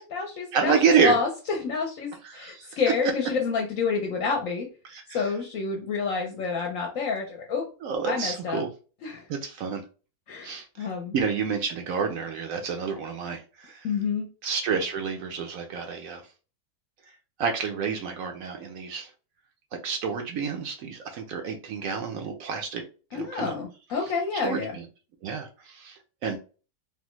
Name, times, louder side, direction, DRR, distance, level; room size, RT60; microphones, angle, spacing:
voice 1, 0.0-4.7 5.1-7.7 8.1-8.6 9.0-9.3 10.3-11.1 13.8-14.3 23.1-24.7, left 5 dB, 65° left, 1 dB, 0.9 m, -28 dB
voice 2, 0.5-1.1 2.3-2.7 4.9-5.2 7.8-8.7 9.3-9.8 10.4-10.9 11.1-13.9 14.4-16.2 17.4-19.1 19.8-22.8 23.1-23.5 24.4-24.6 25.2-26.4, right 6 dB, 70° right, 4 dB, 0.9 m, -28 dB
3.3 x 2.1 x 3.0 m, 0.35 s
omnidirectional pair, 1.6 m